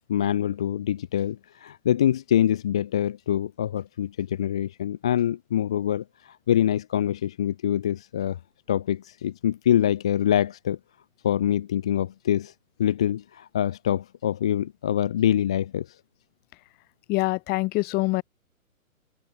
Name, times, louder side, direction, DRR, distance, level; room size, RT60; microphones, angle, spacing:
voice 1, 0.1-8.4 8.7-10.8 11.2-12.5 12.8-16.0, left 10 dB, 5° left, 0.4 m, -25 dB
voice 2, 17.1-18.2, left 22 dB, 20° left, 6.4 m, -24 dB
hypercardioid pair, 155°, 42 cm